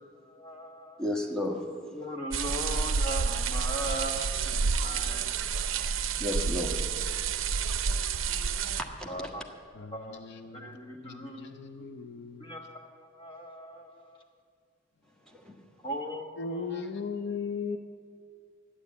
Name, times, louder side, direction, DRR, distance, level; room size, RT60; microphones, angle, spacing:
voice 1, 0.1-1.0 1.9-5.4 9.1-9.4 9.9-10.2 10.5-14.2 15.8-16.8, equal, 25° left, 1.3 m, -39 dB
voice 2, 1.0-1.7 6.2-6.8 8.8-9.3 15.3-15.6, left 1 dB, 5° left, 1.3 m, -33 dB
sound 1, 2.3-8.8, right 5 dB, 70° right, 0.5 m, -29 dB
voice 3, 3.8-4.5 5.0-5.2 9.8-10.8 11.0-12.5 16.4-17.8, left 5 dB, 55° left, 0.6 m, -38 dB
11.5 x 10.0 x 8.4 m
head